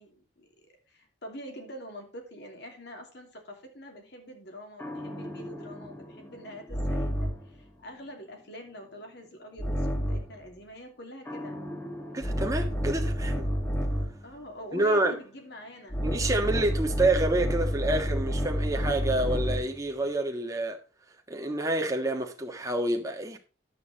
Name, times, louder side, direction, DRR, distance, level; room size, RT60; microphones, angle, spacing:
voice 1, 0.0-11.6 14.2-16.0, equal, 60° left, 2.8 m, -45 dB
sound 1, 4.8-7.5 9.6-10.4 11.3-14.2 15.9-19.8, equal, 10° left, 1.3 m, -30 dB
voice 2, 12.1-13.5 14.7-15.2 16.0-20.8 21.3-23.4, right 2 dB, 15° right, 1.5 m, -28 dB
10.5 x 8.4 x 4.2 m
head